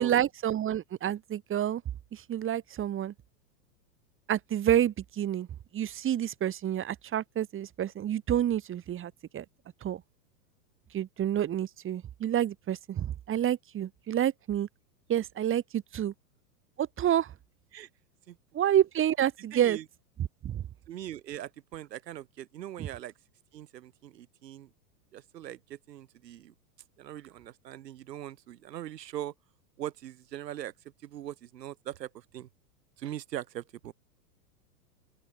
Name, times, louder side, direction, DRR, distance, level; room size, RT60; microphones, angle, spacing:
voice 1, 0.0-1.8 2.1-3.1 4.3-5.5 5.7-9.4 9.8-10.0 10.9-14.7 15.1-16.1 16.8-17.3 18.5-19.8 20.4-20.6, right 11 dB, 25° right, 2.7 m, -28 dB
voice 2, 19.5-19.9 20.9-23.1 23.5-24.7 25.1-26.5 27.0-29.3 29.8-30.7 31.0-32.5 33.0-33.9, right 12 dB, 75° right, 3.4 m, -41 dB
open air
hypercardioid pair, 120°, 50 cm